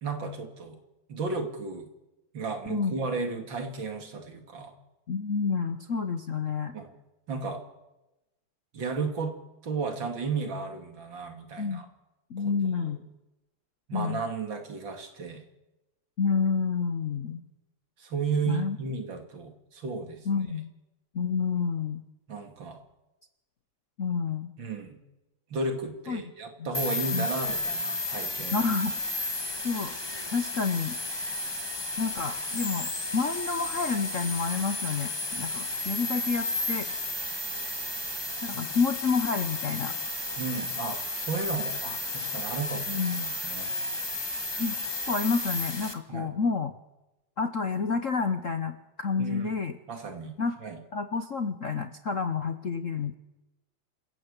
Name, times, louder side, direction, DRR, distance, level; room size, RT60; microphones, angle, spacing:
voice 1, 0.0-0.8 1.1-1.9 2.3-4.7 6.7-6.9 7.3-7.6 8.7-9.3 9.6-11.9 12.4-12.5 12.9-13.0 13.9-15.4 18.0-20.3 22.3-22.8 24.6-25.0 25.5-28.7 40.4-43.8 46.1-46.3 49.2-49.6 49.9-50.8, right 4 dB, 60° right, 5 dB, 3.1 m, -34 dB
voice 2, 5.1-6.7 11.6-11.8 12.3-13.1 13.9-14.2 16.2-17.4 18.5-18.8 20.3-20.7 21.1-22.0 24.0-24.5 26.1-26.2 26.6-26.7 27.1-27.3 28.5-28.9 29.6-30.0 30.3-31.0 32.0-36.9 38.4-39.9 42.9-43.3 44.6-44.7 45.1-46.7 47.4-49.8 50.4-50.5 50.9-53.1, left 5 dB, 50° left, 9 dB, 1.0 m, -29 dB
sound 1, 26.7-45.9, left 2 dB, 15° left, 1.2 m, -33 dB
26.5 x 15.5 x 8.2 m, 1.0 s
omnidirectional pair, 2.4 m